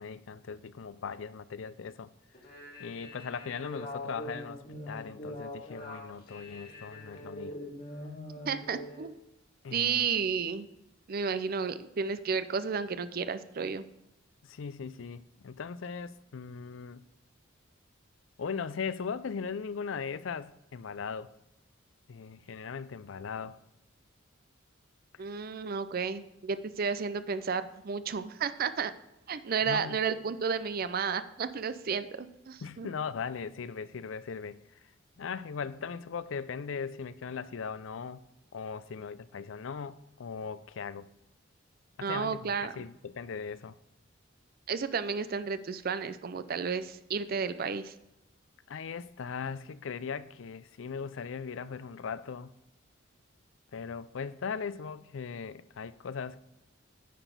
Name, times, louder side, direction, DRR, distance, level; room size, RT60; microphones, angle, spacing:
voice 1, 0.0-2.1 2.8-7.6 9.6-10.1 14.4-17.0 18.4-21.3 22.1-23.6 25.1-25.2 29.6-30.1 32.6-34.9 35.2-38.2 38.5-41.1 42.0-43.8 48.7-52.5 53.7-56.4, left 6 dB, 70° left, 0.4 m, -39 dB
sound 1, 2.3-9.0, left 1 dB, 45° left, 2.4 m, -43 dB
voice 2, 8.4-9.2 9.7-10.7 11.1-13.8 25.2-28.9 29.3-32.9 42.0-42.7 44.7-47.9, right 6 dB, 50° right, 0.5 m, -32 dB
10.0 x 4.1 x 6.7 m
head